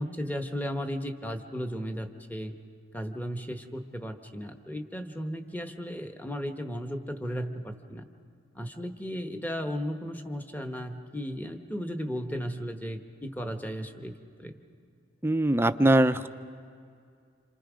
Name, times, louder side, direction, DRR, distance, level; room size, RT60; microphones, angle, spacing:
voice 1, 0.0-2.5 2.9-8.0 8.5-14.1 14.4-14.5, equal, 10° left, 6 dB, 1.1 m, -35 dB
voice 2, 15.2-16.3, right 1 dB, 15° right, 10 dB, 0.5 m, -22 dB
28.0 x 27.0 x 5.1 m, 2.3 s
head